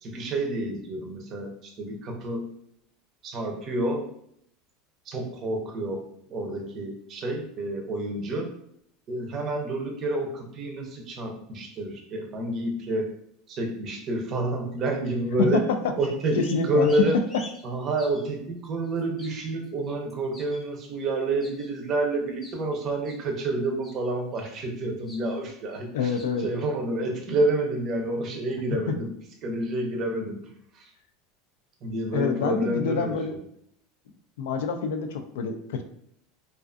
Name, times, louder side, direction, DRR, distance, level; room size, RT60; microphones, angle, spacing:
voice 1, 0.0-2.5 3.2-4.1 5.1-8.5 9.1-13.1 13.5-15.6 16.0-17.2 17.6-29.1 29.4-30.4 30.7-30.9 31.8-33.1, right 2 dB, 35° right, 2 dB, 0.5 m, -29 dB
sound 1, 16.0-18.3 18.8-20.9 21.4-21.7 22.4-22.6 23.0-23.5 23.8-24.4 25.1-25.4 25.7-25.9 26.2-26.7, left 1 dB, 10° left, 0.6 m, -47 dB
voice 2, 16.4-16.9 25.9-26.5 28.9-29.0 32.1-33.4 34.4-35.8, left 5 dB, 85° left, 6 dB, 0.3 m, -27 dB
2.4 x 2.3 x 2.4 m, 0.69 s
supercardioid pair, 140°, 0 cm